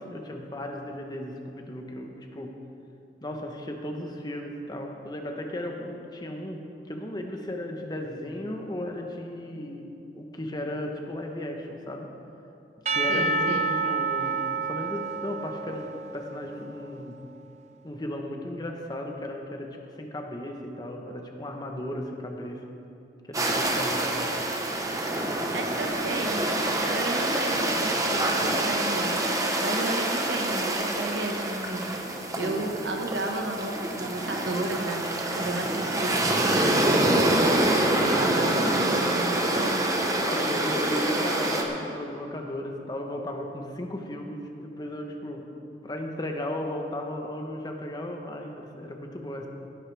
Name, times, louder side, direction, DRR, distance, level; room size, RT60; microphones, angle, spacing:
voice 1, 0.0-2.6 3.2-9.9 10.1-12.1 12.9-17.2 17.8-22.7 23.3-24.4 32.3-32.8 35.1-35.5 38.0-38.6 40.2-45.5 45.8-49.5, left 1 dB, 25° left, 2 dB, 1.0 m, -35 dB
Percussion / Church bell, 12.9-17.0, right 3 dB, 40° right, 0.6 m, -29 dB
voice 2, 13.1-13.8 25.5-26.5 26.8-32.0 32.4-36.3 38.1-39.8, right 2 dB, 90° right, 3 dB, 1.4 m, -33 dB
sound 1, 23.3-41.6, right 1 dB, 20° right, 1.0 m, -26 dB
17.5 x 10.5 x 3.4 m, 2.8 s
head